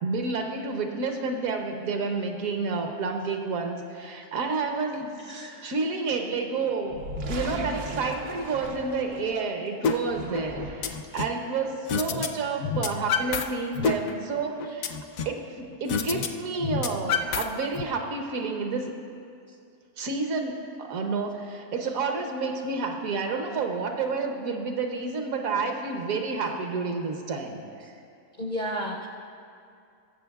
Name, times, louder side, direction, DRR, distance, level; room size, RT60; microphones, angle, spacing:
voice 1, 0.0-7.0 7.3-14.9 15.2-18.9 20.0-27.6, right 4 dB, 70° right, 3 dB, 1.2 m, -30 dB
voice 2, 5.3-5.7 11.1-11.2 19.5-19.6 28.4-29.1, equal, 55° left, -1 dB, 0.5 m, -33 dB
sound 1, 6.9-9.4 9.9-11.1, right 1 dB, 85° right, 1.5 m, -37 dB
sound 2, 9.8-10.0 10.3-11.4 11.9-12.3 12.6-13.4 13.8-15.4 15.9-16.3 16.6-17.8, left 6 dB, 70° left, 0.9 m, -27 dB
21.0 x 7.0 x 2.3 m, 2.4 s
omnidirectional pair, 1.6 m